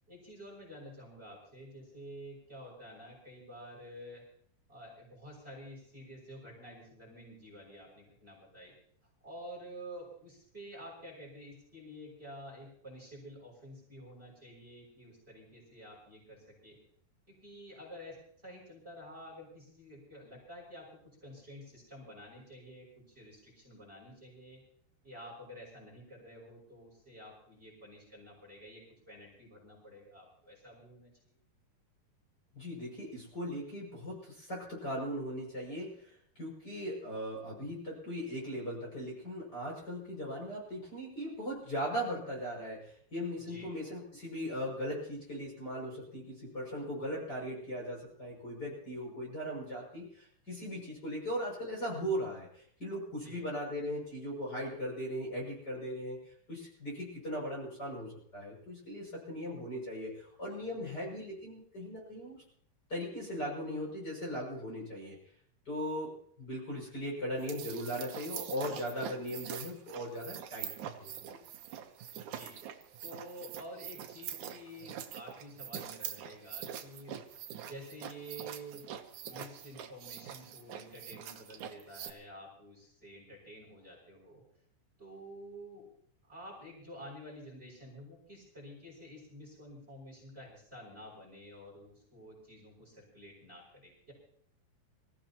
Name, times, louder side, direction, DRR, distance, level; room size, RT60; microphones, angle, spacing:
voice 1, 0.1-4.2 4.7-8.7 9.2-16.8 17.3-18.2 18.4-24.6 25.0-31.4 43.4-43.7 53.1-53.4 72.2-72.6 73.0-77.2 77.6-78.8 79.2-84.4 85.0-85.9 86.2-94.1, equal, 15° right, -2 dB, 6.5 m, -50 dB
voice 2, 32.5-36.1 36.4-62.4 62.9-65.2 65.7-66.1 66.4-71.4, equal, 25° left, -3 dB, 7.0 m, -39 dB
sound 1, 67.4-82.1, right 10 dB, 65° right, 2.0 m, -44 dB
26.0 x 16.0 x 3.0 m, 0.62 s
omnidirectional pair, 4.6 m